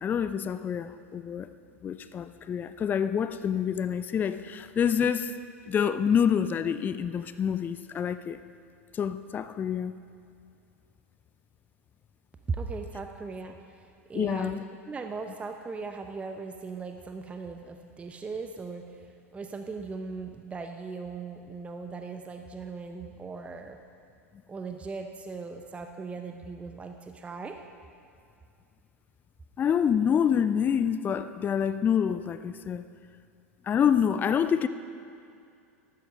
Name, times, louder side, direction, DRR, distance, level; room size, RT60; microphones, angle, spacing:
voice 1, 0.0-1.5 1.8-5.3 5.7-8.4 8.9-9.9 14.1-14.6 29.6-32.8 33.7-34.7, left 8 dB, 25° left, 0.5 m, -27 dB
voice 2, 12.5-14.6 14.8-19.1 19.3-23.8 24.5-27.6, right 4 dB, 15° right, 0.8 m, -38 dB
13.5 x 12.5 x 5.4 m
figure-of-eight pair, 85°, 8 cm